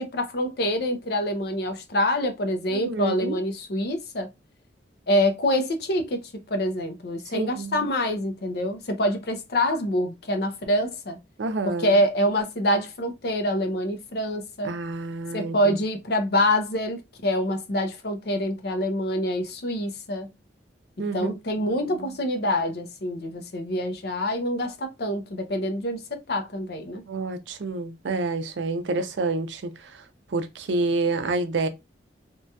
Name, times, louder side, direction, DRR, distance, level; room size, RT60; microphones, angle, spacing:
voice 1, 0.0-4.3 5.1-11.2 11.6-14.7 15.3-20.3 21.1-27.0, left 1 dB, 60° left, 0.6 m, -26 dB
voice 2, 2.7-3.4 7.3-7.9 11.4-12.0 14.6-15.8 21.0-21.4 21.7-22.1 27.1-30.0 30.3-31.7, right 3 dB, 75° right, 0.5 m, -28 dB
3.0 x 2.7 x 2.2 m
head